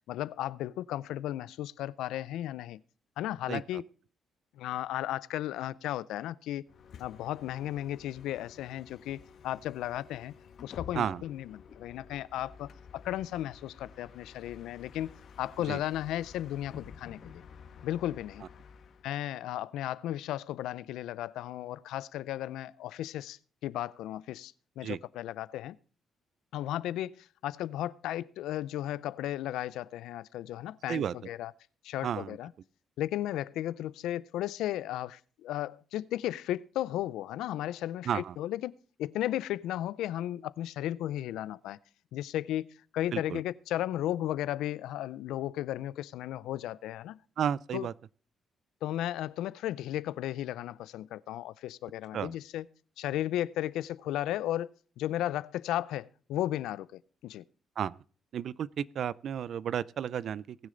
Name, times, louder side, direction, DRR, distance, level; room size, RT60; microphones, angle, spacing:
voice 1, 0.1-2.8 3.2-3.8 4.6-6.6 7.0-10.3 10.6-17.4 17.8-18.4 19.0-25.8 26.5-31.5 31.8-32.5 33.0-38.7 39.0-41.8 42.1-47.2 47.7-47.9 48.8-52.6 53.0-54.7 55.0-57.4, left 13 dB, 85° left, 0.4 m, -35 dB
voice 2, 3.5-3.8 10.9-11.2 15.7-15.8 24.8-25.0 30.9-31.3 32.0-32.4 38.0-38.4 43.1-43.4 47.4-47.9 52.1-52.4 57.8-58.0 58.3-60.6, right 9 dB, 65° right, 0.4 m, -33 dB
Bus, 6.7-19.1, left 6 dB, 65° left, 1.2 m, -51 dB
19.0 x 6.5 x 3.8 m
cardioid pair, 90°, 0 cm